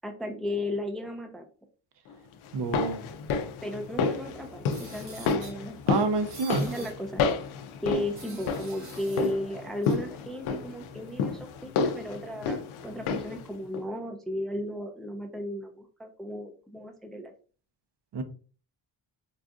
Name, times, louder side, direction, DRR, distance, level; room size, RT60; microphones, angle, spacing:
voice 1, 0.0-1.4 3.6-5.8 6.6-7.2 7.8-17.3, left 1 dB, ahead, 4 dB, 0.5 m, -35 dB
sound 1, 2.5-13.5 13.7-13.8, left 5 dB, 85° left, 0.5 m, -31 dB
voice 2, 2.5-3.0 5.9-6.7 18.1-18.2, right 4 dB, 60° right, 9 dB, 0.7 m, -28 dB
sound 2, 4.7-5.6 6.3-6.9 8.1-9.3 9.8-9.9, right 3 dB, 85° right, 1.6 m, -47 dB
4.0 x 2.4 x 2.4 m, 0.38 s
cardioid pair, 65°, 48 cm